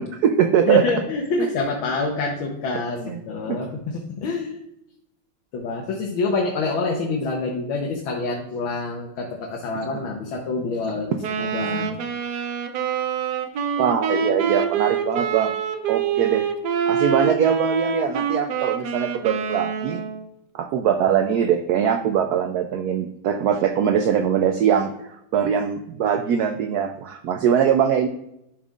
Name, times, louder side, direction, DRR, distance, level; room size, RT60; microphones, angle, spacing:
voice 1, 0.0-0.8 3.1-3.2 3.5-3.6 13.8-15.5 15.9-16.4 16.9-20.0 20.5-28.1, right 8 dB, 90° right, 6 dB, 0.8 m, -22 dB
voice 2, 0.7-4.6 5.5-11.1 11.4-11.9, left 3 dB, 75° left, 0 dB, 1.7 m, -26 dB
Wind instrument woodwind instrument, 11.2-20.3, right 6 dB, 65° right, 1.1 m, -26 dB
11.5 x 5.4 x 2.4 m, 0.81 s
omnidirectional pair, 2.3 m